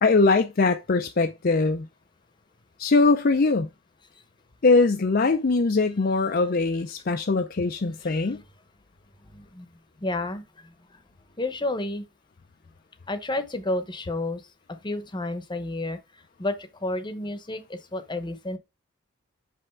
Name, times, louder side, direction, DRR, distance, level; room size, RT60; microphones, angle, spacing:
voice 1, 0.0-1.9 2.8-3.7 4.6-8.4, left 3 dB, 45° left, 0.5 m, -21 dB
voice 2, 8.0-8.4 9.3-9.7 10.0-10.4 11.4-12.1 13.1-14.4 14.7-16.0 16.4-18.6, left 2 dB, 20° left, 0.9 m, -31 dB
6.3 x 5.6 x 3.4 m
head